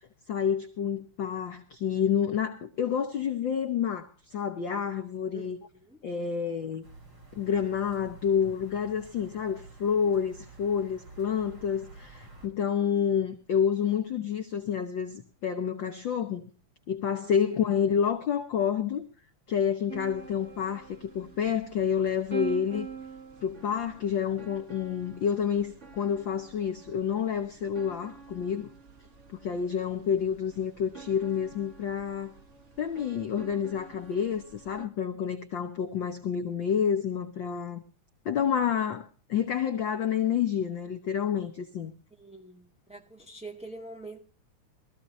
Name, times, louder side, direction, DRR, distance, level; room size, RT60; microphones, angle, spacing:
voice 1, 0.3-5.6 6.0-6.9 7.3-16.5 16.9-19.1 19.5-22.9 23.4-28.7 29.4-32.3 32.8-37.8 38.2-41.9, left 8 dB, 70° left, 1.1 m, -29 dB
voice 2, 5.3-6.0 17.2-17.7 19.9-20.1 22.7-22.8 33.9-34.0 42.2-44.2, right 2 dB, 5° right, 1.5 m, -46 dB
sound 1, 6.8-12.5, right 3 dB, 40° right, 4.6 m, -51 dB
sound 2, 19.9-34.9, right 6 dB, 60° right, 0.7 m, -46 dB
22.0 x 14.5 x 2.7 m
omnidirectional pair, 3.5 m